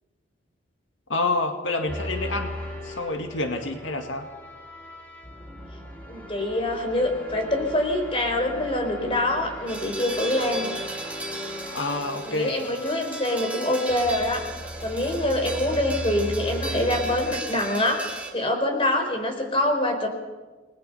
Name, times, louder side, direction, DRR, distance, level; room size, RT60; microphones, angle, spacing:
voice 1, 1.1-2.6 2.8-4.3 11.7-12.6, left 2 dB, 80° left, 4 dB, 2.0 m, -28 dB
sound 1, 1.9-17.4, left 1 dB, 10° left, 3.5 m, -38 dB
voice 2, 6.1-10.7 12.2-14.4 14.8-20.1, left 1 dB, 30° left, 3 dB, 4.6 m, -25 dB
sound 2, 9.7-18.3, right 2 dB, 5° right, 2.7 m, -36 dB
29.0 x 20.5 x 5.6 m, 1.2 s
head